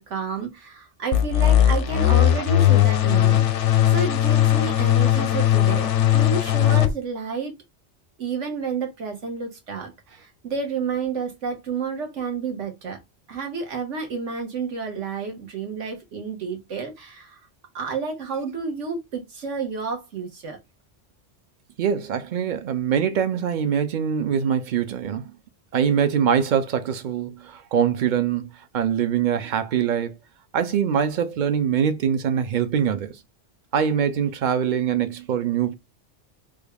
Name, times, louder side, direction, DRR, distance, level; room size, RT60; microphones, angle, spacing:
voice 1, 0.0-7.5 8.2-13.0 13.3-17.4 17.7-20.6, right 5 dB, 85° right, 1.4 m, -30 dB
sound 1, 1.1-6.9, left 12 dB, 80° left, 0.9 m, -18 dB
voice 2, 21.8-25.3 25.7-30.1 30.5-33.1 33.7-35.7, right 8 dB, 55° right, 0.5 m, -23 dB
3.4 x 2.2 x 3.3 m
omnidirectional pair, 1.2 m